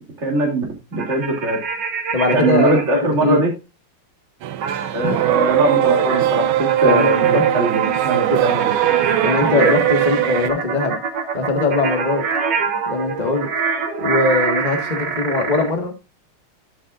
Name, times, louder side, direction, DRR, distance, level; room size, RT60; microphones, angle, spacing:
voice 1, 0.2-0.6 0.9-1.6 2.3-3.5 4.9-8.9, right 2 dB, 35° right, 1 dB, 3.0 m, -21 dB
sound 1, 0.9-3.0 4.6-15.7, right 5 dB, 60° right, 2.0 m, -25 dB
voice 2, 2.1-3.4 6.8-7.4 8.3-8.4 9.2-11.0 11.3-12.2 12.9-13.5 14.0-15.9, left 3 dB, 20° left, 5 dB, 1.6 m, -21 dB
sound 2, 4.4-10.5, right 12 dB, 80° right, 1.5 m, -19 dB
11.0 x 8.7 x 2.4 m, 0.26 s
omnidirectional pair, 2.3 m